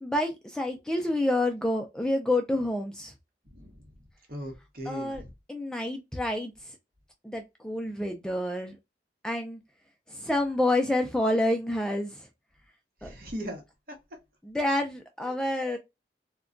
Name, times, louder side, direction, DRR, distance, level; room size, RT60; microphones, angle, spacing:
voice 1, 0.0-3.1 4.9-5.2 5.5-6.5 7.2-8.8 9.2-9.6 10.1-12.3 13.0-13.1 14.4-15.8, left 1 dB, 5° left, 0.3 m, -28 dB
voice 2, 4.3-5.3 13.0-13.6 13.9-14.0 15.2-15.3, equal, 55° right, 1.0 m, -38 dB
2.2 x 2.2 x 3.7 m
head